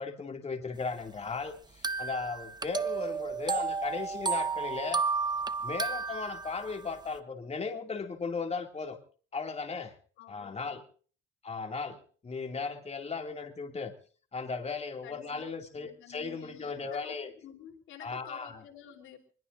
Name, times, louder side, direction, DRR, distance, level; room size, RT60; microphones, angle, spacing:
voice 1, 0.0-5.0 5.6-9.0 9.3-9.9 10.3-10.8 11.4-13.9 14.3-17.3 18.0-18.5, left 4 dB, 30° left, 4 dB, 2.5 m, -36 dB
sound 1, 1.8-6.8, right 5 dB, 20° right, 0.9 m, -32 dB
voice 2, 10.2-10.8 15.0-15.4 15.7-19.2, left 9 dB, 85° left, 6 dB, 3.4 m, -51 dB
24.5 x 21.5 x 2.6 m, 0.43 s
cardioid pair, 90°, 20 cm